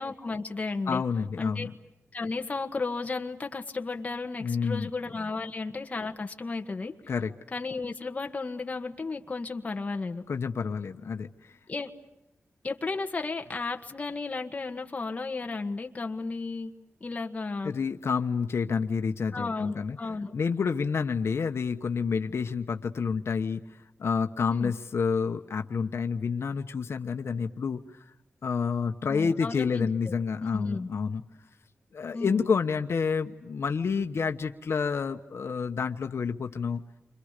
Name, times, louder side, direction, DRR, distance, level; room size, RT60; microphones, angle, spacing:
voice 1, 0.0-1.0 1.4-1.7 2.1-6.9 7.5-10.2 11.7-11.9 12.6-16.7 17.0-17.7 19.3-20.3 24.5-24.7 29.1-29.9 30.4-30.9 32.1-32.4, left 3 dB, 30° left, 4 dB, 1.6 m, -33 dB
voice 2, 0.9-1.7 4.4-4.9 7.1-7.3 10.3-11.6 17.6-20.0 20.3-23.6 24.0-27.8 28.4-31.2 31.9-36.8, left 5 dB, 70° left, 6 dB, 1.1 m, -29 dB
30.0 x 26.0 x 6.7 m, 0.91 s
wide cardioid pair, 170°, 5 cm